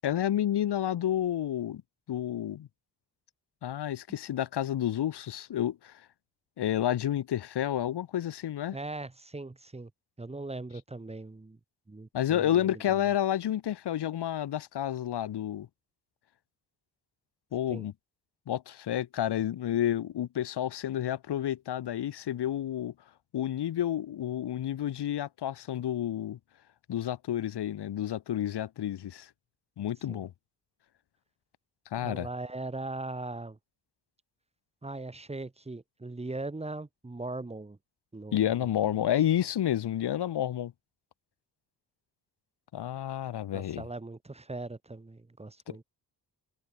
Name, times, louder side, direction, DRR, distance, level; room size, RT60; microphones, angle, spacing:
voice 1, 0.0-1.8 2.1-2.7 3.6-6.0 6.6-8.8 12.1-15.7 17.5-17.9 18.5-22.9 23.3-26.4 26.9-29.3 29.8-30.3 31.9-32.3 38.3-40.7 42.7-43.8 45.7-45.8, left 11 dB, 85° left, 2.3 m, -30 dB
voice 2, 8.7-9.9 10.2-11.6 11.9-13.0 17.7-17.9 30.1-30.3 31.9-33.6 34.8-37.8 38.1-39.1 43.5-45.8, right 2 dB, 15° right, 2.2 m, -40 dB
wide cardioid pair, 140°, 39 cm